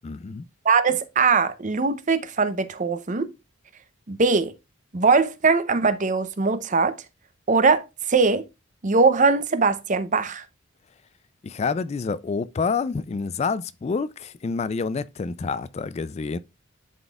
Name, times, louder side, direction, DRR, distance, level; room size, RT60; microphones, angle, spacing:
voice 1, 0.0-0.4 11.4-16.4, left 4 dB, 30° left, 0.3 m, -28 dB
voice 2, 0.6-3.3 4.1-4.5 4.9-7.0 7.5-8.5 8.8-10.4, right 4 dB, 40° right, 0.7 m, -21 dB
11.0 x 4.1 x 2.3 m
head